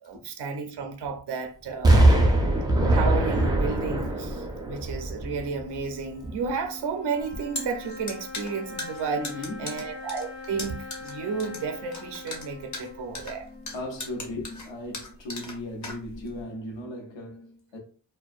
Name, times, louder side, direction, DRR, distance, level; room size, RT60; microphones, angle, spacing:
voice 1, 0.0-2.2 2.9-9.3 9.6-13.5, right 5 dB, 65° right, 0.5 m, -32 dB
Explosion, 1.8-5.8 6.2-6.3, right 1 dB, 10° right, 0.3 m, -22 dB
sound 1, 5.2-14.6, left 3 dB, 60° left, 1.1 m, -43 dB
sound 2, 7.2-16.4, left 2 dB, 40° left, 0.6 m, -38 dB
voice 2, 9.2-9.9 13.4-17.8, left 1 dB, 85° left, 0.7 m, -37 dB
2.4 x 2.2 x 2.4 m
wide cardioid pair, 150°, 43 cm